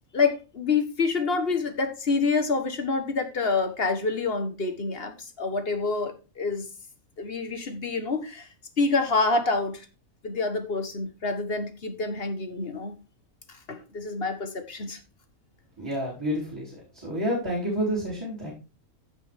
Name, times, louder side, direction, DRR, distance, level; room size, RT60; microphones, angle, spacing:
voice 1, 0.1-6.7 7.2-8.5 8.8-9.8 10.2-13.0 13.5-15.0, left 4 dB, 45° left, 1.5 m, -27 dB
voice 2, 15.8-18.5, equal, 15° right, 3.9 m, -29 dB
15.5 x 5.1 x 3.6 m
omnidirectional pair, 1.5 m